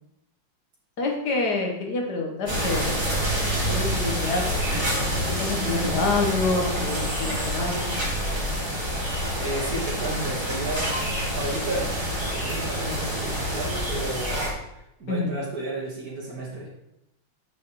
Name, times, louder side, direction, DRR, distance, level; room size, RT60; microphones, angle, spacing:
voice 1, 1.0-3.2 3.6-4.5 4.7-5.0 5.4-8.1 15.1-15.3, left 3 dB, 55° left, 1 dB, 1.7 m, -27 dB
sound 1, 2.5-14.5, equal, 15° right, 1.9 m, -27 dB
voice 2, 9.4-10.9 11.3-11.9 12.3-14.6 15.0-16.7, right 2 dB, 45° right, -5 dB, 2.0 m, -32 dB
8.4 x 7.1 x 3.1 m, 0.85 s
omnidirectional pair, 2.3 m